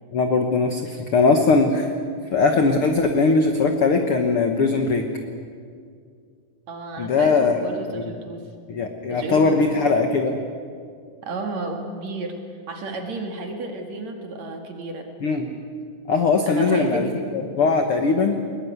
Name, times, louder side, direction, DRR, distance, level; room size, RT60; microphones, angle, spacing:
voice 1, 0.1-1.9 2.3-5.0 7.0-7.6 7.9-8.0 8.7-10.4 15.2-15.5 16.1-17.1 17.3-18.4, left 4 dB, 65° left, 5 dB, 1.4 m, -20 dB
voice 2, 6.7-8.5 9.1-9.5 11.2-12.4 12.7-15.1 16.5-17.3, right 2 dB, 50° right, 4 dB, 3.0 m, -32 dB
22.0 x 20.5 x 9.4 m, 2.2 s
omnidirectional pair, 4.5 m